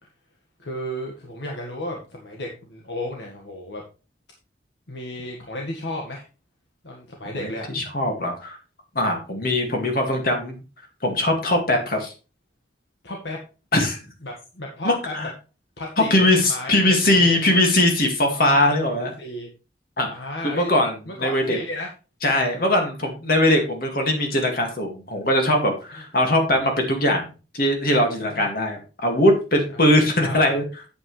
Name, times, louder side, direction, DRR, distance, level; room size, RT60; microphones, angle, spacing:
voice 1, 0.6-3.8 4.9-6.2 6.8-7.7 13.0-13.4 14.2-15.1 15.8-17.4 18.3-19.5 20.1-20.7 21.1-21.9 28.3-28.5 29.7-30.6, left 1 dB, 70° left, 0 dB, 1.7 m, -33 dB
voice 2, 7.4-8.6 8.9-10.6 11.0-12.1 13.7-14.0 14.8-15.3 16.1-19.1 20.0-20.1 20.4-20.9 21.2-21.6 22.2-27.3 27.5-30.6, left 1 dB, 55° left, 3 dB, 2.3 m, -21 dB
8.6 x 8.4 x 3.3 m, 0.32 s
head